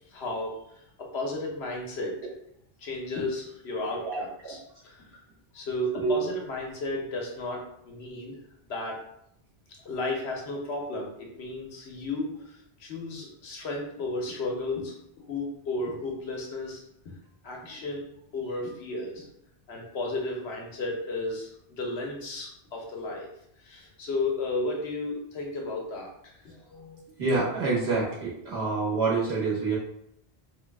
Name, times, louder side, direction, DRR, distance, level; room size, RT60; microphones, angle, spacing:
voice 1, 0.1-0.5 1.0-2.2 2.8-4.6 4.8-5.1 5.5-8.4 8.7-9.0 9.8-14.9 15.3-16.8 17.4-18.0 18.3-19.2 19.7-21.5 21.8-23.3 23.6-26.1 26.7-27.4, left 2 dB, 90° left, 0 dB, 1.1 m, -33 dB
voice 2, 3.9-4.5 6.0-6.1 27.2-29.8, right 3 dB, 75° right, -6 dB, 1.5 m, -27 dB
3.2 x 2.3 x 3.4 m, 0.73 s
omnidirectional pair, 1.1 m